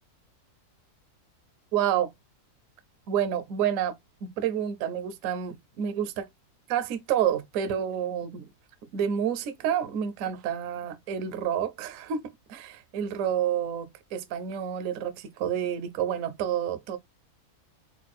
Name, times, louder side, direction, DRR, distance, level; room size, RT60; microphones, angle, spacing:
voice 1, 1.7-2.1 3.1-3.9 4.4-6.3 6.7-8.5 8.9-12.2 12.5-17.0, right 9 dB, 65° right, 1.0 m, -29 dB
4.4 x 2.3 x 4.1 m
omnidirectional pair, 1.6 m